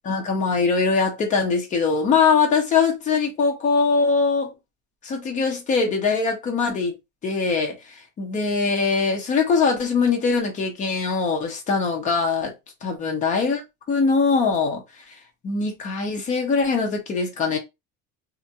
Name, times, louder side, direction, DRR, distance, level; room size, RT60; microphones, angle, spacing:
voice 1, 0.1-4.5 5.0-6.9 7.2-12.5 12.8-13.6 13.9-14.8 15.1-15.2 15.4-17.6, left 4 dB, 25° left, 0.6 m, -22 dB
2.5 x 2.2 x 2.6 m
cardioid pair, 175°, 31 cm